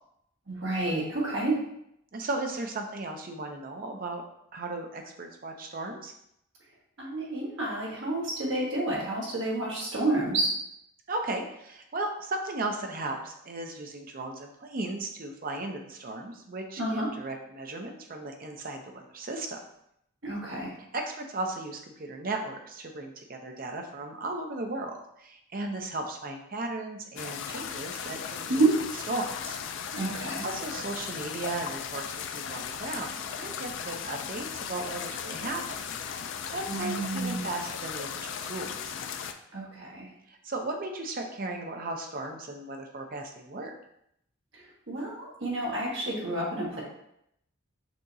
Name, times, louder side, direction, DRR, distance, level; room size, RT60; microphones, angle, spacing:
voice 1, 0.5-1.5 7.0-10.6 16.8-17.1 20.2-20.7 28.5-28.7 29.9-30.4 36.7-37.5 39.5-40.1 44.9-46.8, right 2 dB, 60° right, -4 dB, 1.5 m, -29 dB
voice 2, 2.1-4.2 4.5-6.1 11.1-19.6 20.9-28.7 29.1-29.6 30.2-35.8 36.4-38.9 40.3-43.7, right 2 dB, 40° right, 3 dB, 0.5 m, -36 dB
sound 1, 27.2-39.3, left 7 dB, 55° left, 0.3 m, -37 dB
6.1 x 2.9 x 2.6 m, 0.75 s
head